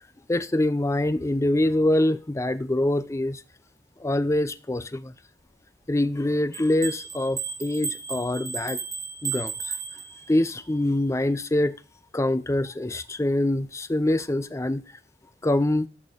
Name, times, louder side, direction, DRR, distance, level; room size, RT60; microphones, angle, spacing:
voice 1, 0.3-3.4 4.0-5.1 5.9-8.8 9.2-9.8 10.3-11.8 12.1-14.8 15.4-15.9, left 1 dB, 15° left, 0.5 m, -24 dB
sound 1, 6.5-10.5, right 6 dB, 20° right, 1.2 m, -34 dB
13.0 x 4.3 x 5.0 m
head